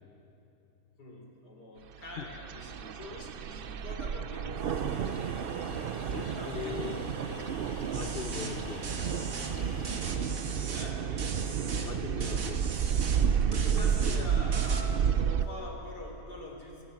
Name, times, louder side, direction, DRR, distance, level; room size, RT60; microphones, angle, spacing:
voice 1, 1.0-5.7 6.2-7.4 8.1-8.3 10.7-11.1 13.5-16.8, left 1 dB, 85° left, 0 dB, 4.1 m, -44 dB
sound 1, 2.1-15.5, right 8 dB, 80° right, 0.5 m, -31 dB
Train, 4.5-10.1, right 1 dB, 40° left, 7.4 m, -46 dB
voice 2, 6.1-7.0 7.9-8.9 11.8-12.7 13.7-14.4, left 7 dB, 60° left, 10 dB, 0.6 m, -40 dB
sound 2, 7.9-8.6 8.8-9.6 9.8-10.9 11.2-11.9 12.2-13.3 13.5-14.2 14.5-14.8, right 4 dB, 55° right, 1.9 m, -38 dB
23.5 x 16.5 x 8.8 m, 2.9 s
omnidirectional pair, 1.7 m